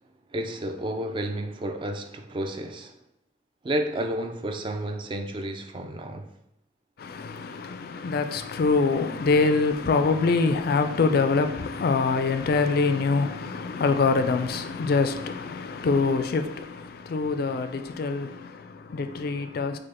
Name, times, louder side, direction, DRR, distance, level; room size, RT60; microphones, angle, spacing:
voice 1, 0.3-3.0 3.6-6.3, right 1 dB, 25° right, 0.3 m, -31 dB
voice 2, 7.0-19.8, left 4 dB, 50° left, 0.3 m, -25 dB
5.1 x 2.1 x 4.3 m
head